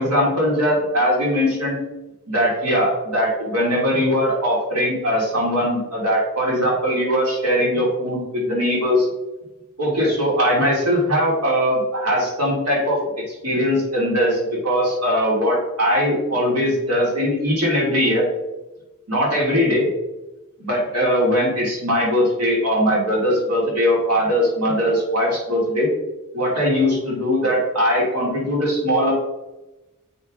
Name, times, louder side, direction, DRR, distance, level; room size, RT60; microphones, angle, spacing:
voice 1, 0.0-1.8 2.3-9.1 9.8-13.0 13.3-18.2 19.1-19.9 20.6-25.9 26.3-29.1, equal, 90° right, -4 dB, 2.9 m, -20 dB
7.7 x 5.8 x 3.8 m, 1.0 s
head